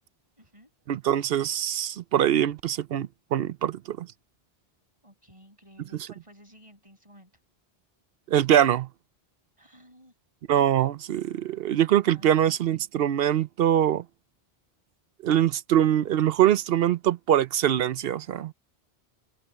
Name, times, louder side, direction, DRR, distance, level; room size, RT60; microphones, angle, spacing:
voice 1, 0.4-0.7 5.0-7.3 9.6-10.1 12.0-12.8, equal, 30° right, 5.9 m, -54 dB
voice 2, 0.9-4.1 8.3-8.9 10.5-14.0 15.2-18.5, right 10 dB, 70° right, 0.8 m, -23 dB
omnidirectional pair, 1.1 m